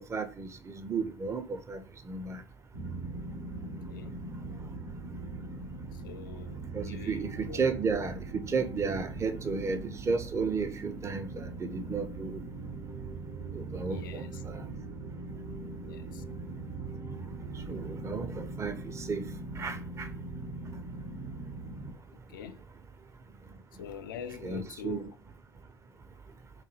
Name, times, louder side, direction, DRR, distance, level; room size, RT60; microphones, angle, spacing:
voice 1, 0.0-2.4 6.7-12.4 13.5-14.7 17.7-19.3 19.6-20.1 24.4-25.0, right 4 dB, 25° right, 0.5 m, -33 dB
sound 1, 2.7-21.9, right 3 dB, 70° right, 1.0 m, -41 dB
voice 2, 3.6-4.1 5.9-7.6 13.8-14.4 15.8-16.2 22.1-22.6 23.8-25.1, left 8 dB, 80° left, 0.4 m, -45 dB
4.6 x 2.3 x 3.1 m
hypercardioid pair, 65°, 11 cm